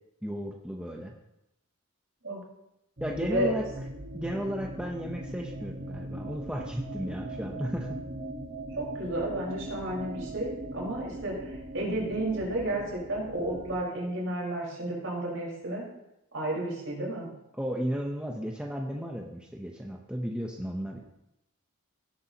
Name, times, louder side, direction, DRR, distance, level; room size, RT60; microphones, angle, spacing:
voice 1, 0.2-1.1 3.0-3.7 4.1-8.0 17.5-21.0, equal, 5° right, 0 dB, 0.7 m, -34 dB
sound 1, 3.0-13.8, right 1 dB, 40° right, 1.1 m, -40 dB
voice 2, 8.8-15.8 16.3-17.3, right 1 dB, 65° right, -3 dB, 4.4 m, -32 dB
17.0 x 8.2 x 2.9 m, 0.88 s
head